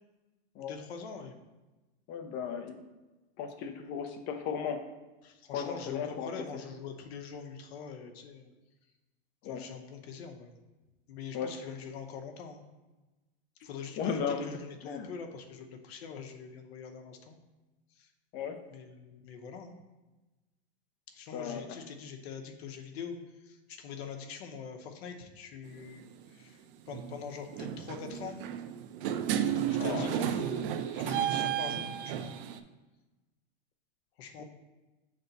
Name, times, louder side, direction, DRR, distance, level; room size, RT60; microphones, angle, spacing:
voice 1, 0.7-1.3 5.2-8.5 9.4-10.6 11.1-12.6 13.6-17.4 18.0-18.1 18.7-19.7 21.1-23.2 23.4-26.6 26.9-28.4 29.7-32.4 34.2-34.4, left 6 dB, 75° left, 4 dB, 0.9 m, -44 dB
voice 2, 2.1-2.8 3.4-4.8 5.5-6.3 9.4-9.7 11.3-11.5 14.0-14.5 14.8-15.1 18.3-18.6 21.3-21.8 29.8-30.1 34.4-34.5, left 7 dB, 35° left, 7 dB, 0.6 m, -35 dB
sound 1, 25.7-25.9 26.9-27.2 27.5-32.6, right 9 dB, 55° right, 0.5 m, -32 dB
6.7 x 3.5 x 4.0 m, 1.1 s
supercardioid pair, 145°, 32 cm